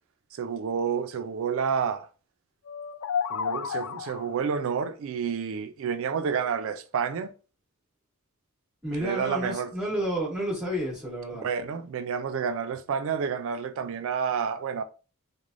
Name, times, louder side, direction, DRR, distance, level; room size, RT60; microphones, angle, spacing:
voice 1, 0.4-2.1 3.3-7.3 9.0-9.7 11.3-14.8, right 6 dB, 65° right, 0.4 m, -29 dB
sound 1, 2.6-4.5, left 7 dB, 70° left, 0.3 m, -31 dB
voice 2, 8.8-11.5, right 1 dB, 5° right, 0.9 m, -30 dB
3.1 x 2.1 x 2.5 m
head